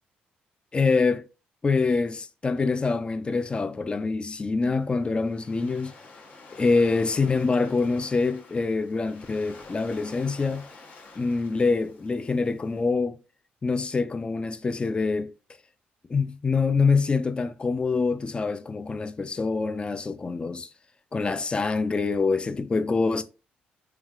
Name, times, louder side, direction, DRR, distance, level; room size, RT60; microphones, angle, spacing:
voice 1, 0.7-1.3 1.6-5.9 6.5-10.7 11.2-13.2 13.6-15.3 16.1-20.7 21.1-23.2, left 4 dB, 30° left, 0.3 m, -25 dB
Waves surf, 4.6-12.8, left 3 dB, 55° left, 0.8 m, -49 dB
3.2 x 2.3 x 2.4 m
supercardioid pair, 70°, 4 cm